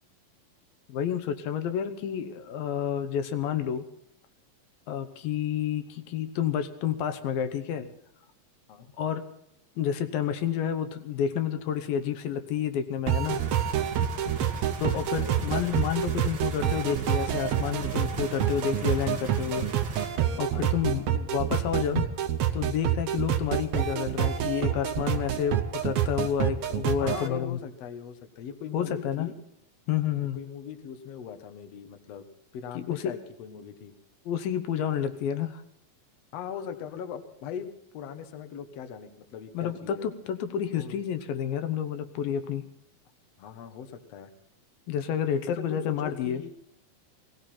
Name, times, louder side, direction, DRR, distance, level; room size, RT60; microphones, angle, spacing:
voice 1, 0.9-3.8 4.9-7.9 9.0-9.3 9.8-13.4 14.8-19.7 20.0-22.1 22.5-27.6 28.7-29.3 29.9-30.4 32.8-33.1 34.3-35.6 39.5-42.6 44.9-46.4, left 9 dB, 80° left, 8 dB, 2.7 m, -30 dB
sound 1, 13.1-27.3, right 10 dB, 75° right, 1.6 m, -28 dB
sound 2, 13.2-20.1, right 5 dB, 45° right, 1.4 m, -40 dB
voice 2, 15.2-15.8 20.5-21.1 27.0-29.3 30.3-32.3 32.5-33.9 36.3-37.7 37.9-40.1 40.7-41.0 43.4-44.3 45.7-46.5, left 8 dB, 60° left, 8 dB, 1.8 m, -40 dB
18.5 x 17.5 x 4.3 m, 0.72 s
omnidirectional pair, 4.1 m